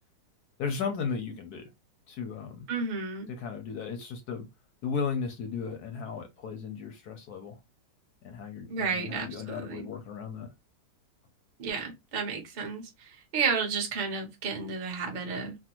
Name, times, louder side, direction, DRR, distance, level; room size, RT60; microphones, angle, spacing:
voice 1, 0.6-1.7 2.1-2.7 3.3-4.5 4.8-7.6 8.2-10.5, left 6 dB, 65° left, 1.0 m, -35 dB
voice 2, 2.7-3.3 8.7-9.9 11.6-15.6, right 5 dB, 50° right, 0.5 m, -32 dB
3.3 x 2.2 x 2.9 m
omnidirectional pair, 2.3 m